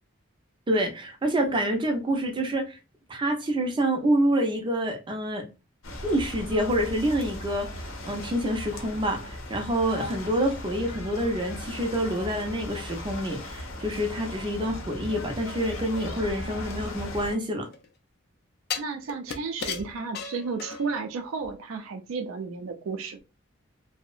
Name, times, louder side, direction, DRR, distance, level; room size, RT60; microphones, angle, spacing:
voice 1, 0.7-2.8 3.1-5.4 6.0-17.7, right 1 dB, 25° right, 0.5 m, -27 dB
sound 1, 5.8-17.3, left 1 dB, 85° left, 0.7 m, -37 dB
sound 2, 16.7-17.9 18.7-21.1 21.4-21.5, left 6 dB, 50° left, 0.4 m, -36 dB
voice 2, 18.8-23.2, right 4 dB, 90° right, 0.4 m, -33 dB
2.7 x 2.0 x 2.3 m
head